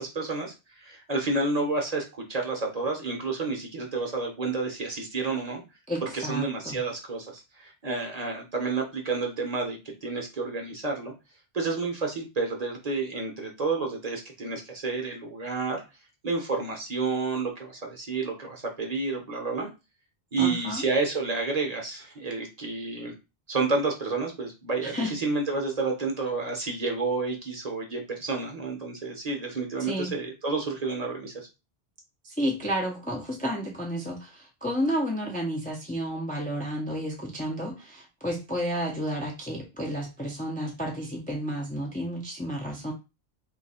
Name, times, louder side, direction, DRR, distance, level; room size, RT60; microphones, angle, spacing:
voice 1, 0.0-5.6 6.0-11.1 11.5-15.8 16.2-19.7 20.3-23.1 23.5-31.5, right 3 dB, 40° right, 2 dB, 0.8 m, -30 dB
voice 2, 5.9-6.8 20.4-20.8 24.8-25.1 29.8-30.1 32.2-42.9, equal, 10° left, 0 dB, 0.4 m, -31 dB
2.8 x 2.4 x 4.1 m, 0.28 s
omnidirectional pair, 1.1 m